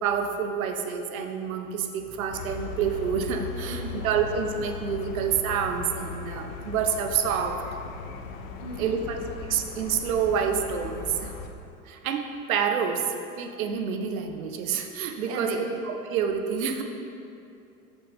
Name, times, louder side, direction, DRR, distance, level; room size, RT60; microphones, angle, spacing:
voice 1, 0.0-7.6 8.8-11.3 11.9-13.1 13.4-16.8, right 7 dB, 65° right, 6 dB, 0.7 m, -28 dB
sound 1, 2.3-11.5, left 5 dB, 60° left, 0.6 m, -38 dB
voice 2, 3.7-4.1 8.6-8.9 15.3-15.8, right 3 dB, 30° right, 2 dB, 0.8 m, -35 dB
6.8 x 6.1 x 3.2 m, 2.7 s
figure-of-eight pair, 80°, 45 cm